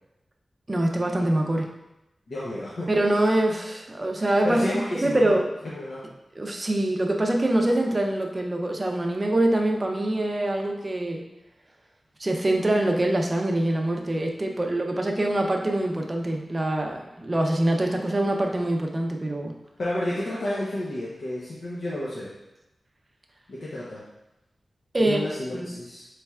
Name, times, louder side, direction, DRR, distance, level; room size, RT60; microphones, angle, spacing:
voice 1, 0.7-1.7 2.9-4.6 5.0-5.4 6.4-11.2 12.2-19.5 24.9-25.2 25.5-25.7, right 1 dB, 30° right, 1 dB, 0.5 m, -24 dB
voice 2, 2.3-2.9 4.4-5.3 5.6-6.0 19.8-22.3 23.5-24.0 25.0-26.1, left 1 dB, 70° left, -7 dB, 0.7 m, -31 dB
4.2 x 3.2 x 2.3 m, 0.92 s
wide cardioid pair, 90°, 0 cm